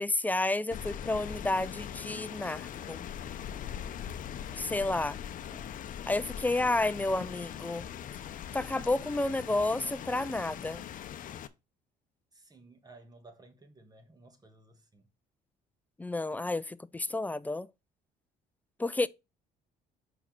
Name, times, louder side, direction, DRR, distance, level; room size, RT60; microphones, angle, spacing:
voice 1, 0.0-3.1 4.5-5.2 6.1-7.9 8.5-10.9 16.0-17.7 18.8-19.1, left 2 dB, 10° left, 0.4 m, -31 dB
Rain, 0.7-11.5, left 9 dB, 50° left, 0.7 m, -41 dB
voice 2, 5.4-5.9 6.5-7.4 9.5-10.0 12.3-15.1, right 2 dB, 25° right, 1.7 m, -57 dB
5.5 x 4.7 x 6.0 m
cardioid pair, 110°, 17 cm